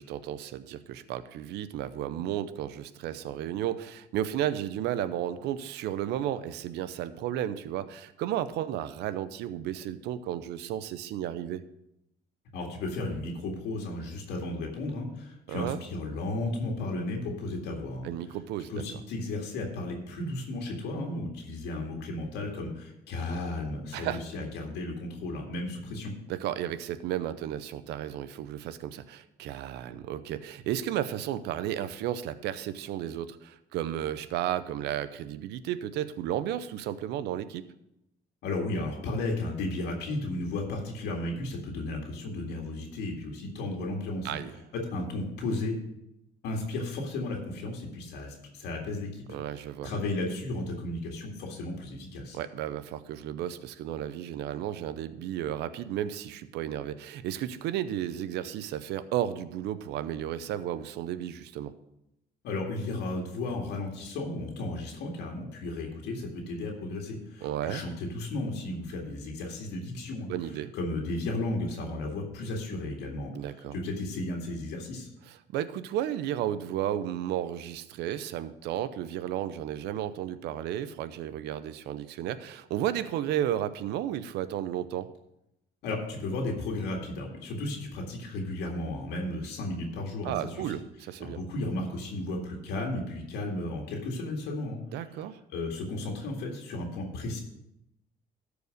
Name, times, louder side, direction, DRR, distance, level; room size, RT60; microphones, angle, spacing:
voice 1, 0.0-11.6 15.5-15.8 18.0-18.7 23.9-24.2 26.3-37.6 44.2-44.5 49.3-49.9 52.3-61.7 67.4-67.8 70.3-70.7 73.3-73.8 75.3-85.1 90.2-91.4 94.9-95.4, right 11 dB, 85° right, 14 dB, 0.7 m, -33 dB
voice 2, 12.5-18.1 18.7-26.1 38.4-44.4 44.7-45.8 46.4-49.2 49.5-52.4 62.4-70.3 70.7-75.1 85.8-90.8 91.2-94.8 95.5-97.4, left 2 dB, 80° left, 0 dB, 2.0 m, -34 dB
13.0 x 5.0 x 6.5 m, 0.84 s
cardioid pair, 110°, 17 cm